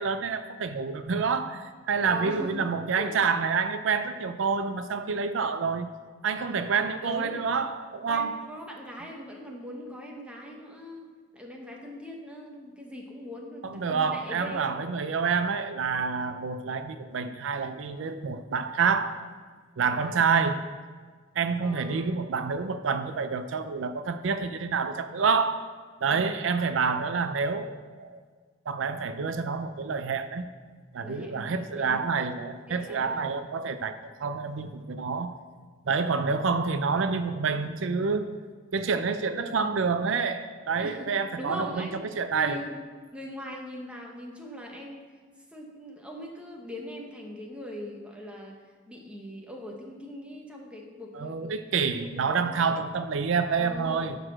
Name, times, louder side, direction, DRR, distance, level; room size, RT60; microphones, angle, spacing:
voice 1, 0.0-5.9 6.2-8.4 13.6-19.1 19.8-20.6 21.4-25.6 26.0-28.2 28.7-30.4 30.9-35.4 35.9-38.4 38.7-42.6 51.1-54.2, right 5 dB, 80° right, 10 dB, 0.5 m, -28 dB
voice 2, 2.0-2.7 3.0-3.1 7.0-7.4 8.1-11.0 11.3-14.8 19.8-20.3 21.6-22.1 26.1-26.4 31.0-32.0 32.7-33.3 39.4-39.7 40.8-41.1 41.3-42.0 42.3-42.7 43.1-45.1 45.5-52.8 53.6-54.1, left 1 dB, 5° right, 0 dB, 1.1 m, -41 dB
11.0 x 4.0 x 6.3 m, 1.5 s
head